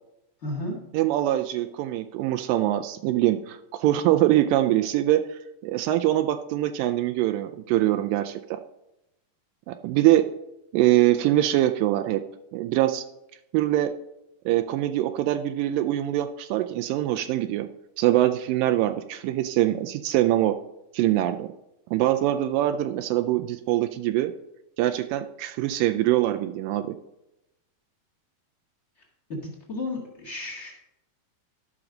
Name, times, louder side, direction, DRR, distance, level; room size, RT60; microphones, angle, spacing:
voice 1, 0.4-0.8 29.3-30.7, left 2 dB, 40° left, -2 dB, 1.0 m, -33 dB
voice 2, 0.9-8.6 9.7-10.2 10.7-12.2 12.5-13.0 13.5-13.9 14.5-17.7 18.0-20.5 20.9-21.5 21.9-24.3 24.8-27.0, right 14 dB, 90° right, 8 dB, 1.9 m, -23 dB
13.5 x 6.0 x 3.8 m, 0.88 s
omnidirectional pair, 4.5 m